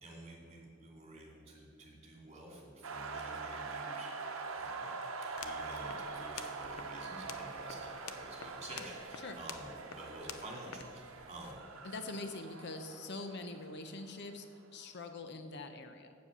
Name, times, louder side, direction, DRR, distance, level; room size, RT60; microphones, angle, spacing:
voice 1, 0.0-11.7, right 1 dB, 30° right, -1 dB, 2.4 m, -50 dB
sound 1, 2.8-14.5, right 4 dB, 70° right, 0.9 m, -44 dB
sound 2, 5.2-11.5, left 7 dB, 85° left, 0.6 m, -50 dB
voice 2, 11.8-14.4 14.7-16.1, left 2 dB, 55° left, 7 dB, 0.7 m, -44 dB
8.2 x 7.4 x 6.7 m, 2.1 s
head